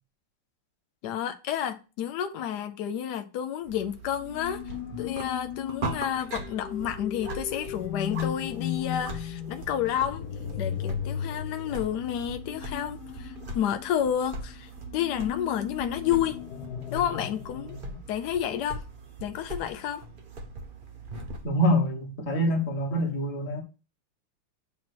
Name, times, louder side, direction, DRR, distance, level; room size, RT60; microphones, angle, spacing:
voice 1, 1.0-10.3 10.6-16.4 16.9-17.8 18.1-18.8 19.2-20.0, left 10 dB, 85° left, 0.9 m, -30 dB
sound 1, 3.6-21.5, right 2 dB, 60° right, 0.5 m, -41 dB
sound 2, 4.2-18.0, left 10 dB, 65° left, 1.1 m, -37 dB
voice 2, 21.4-23.6, equal, 40° left, 1.6 m, -25 dB
8.4 x 2.9 x 6.1 m
omnidirectional pair, 2.4 m